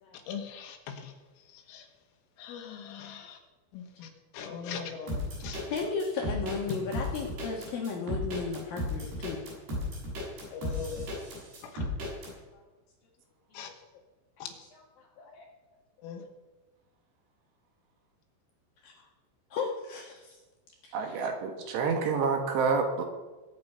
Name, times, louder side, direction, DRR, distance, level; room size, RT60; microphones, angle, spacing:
voice 1, 0.3-1.1 1.5-1.9 2.4-3.4 3.7-5.6 10.5-11.1 11.6-11.9 13.5-13.7 14.4-14.5 16.0-16.2, left 7 dB, 85° left, 4 dB, 4.4 m, -41 dB
sound 1, 5.1-12.3, left 1 dB, 50° right, 8.4 m, -34 dB
voice 2, 5.6-9.4 12.2-12.3 12.5-12.6 14.4-15.5 18.8-19.0 19.5-20.4 20.8-21.2, left 4 dB, 65° left, 0 dB, 2.5 m, -35 dB
voice 3, 20.9-23.0, right 5 dB, 65° right, 4 dB, 3.4 m, -28 dB
21.5 x 9.7 x 5.6 m, 1.2 s
omnidirectional pair, 5.8 m